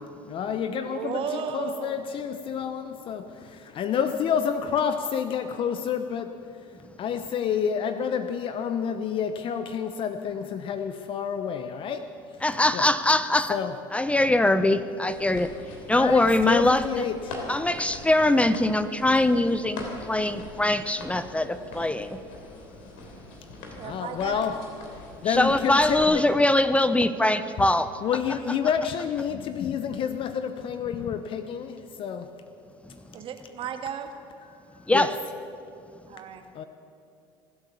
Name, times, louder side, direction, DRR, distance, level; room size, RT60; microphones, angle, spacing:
voice 1, 0.3-12.1 12.4-12.5 12.7-12.9 13.5-13.7 16.0-17.5 23.8-24.6 25.2-26.2 28.0-32.3 34.7-35.1 36.6-36.7, left 7 dB, 50° left, 9 dB, 0.8 m, -29 dB
voice 2, 0.8-2.1 23.8-24.5 33.1-34.1 36.1-36.4, right 7 dB, 50° right, 6 dB, 1.7 m, -34 dB
voice 3, 12.4-13.6 13.9-15.5 15.9-17.0 17.5-22.2 25.2-27.9 34.9-35.1, left 1 dB, 10° left, 13 dB, 0.7 m, -22 dB
sound 1, 15.1-26.0, left 2 dB, 70° left, 3.3 m, -42 dB
24.5 x 8.2 x 7.0 m, 2.6 s
hypercardioid pair, 80°, 12 cm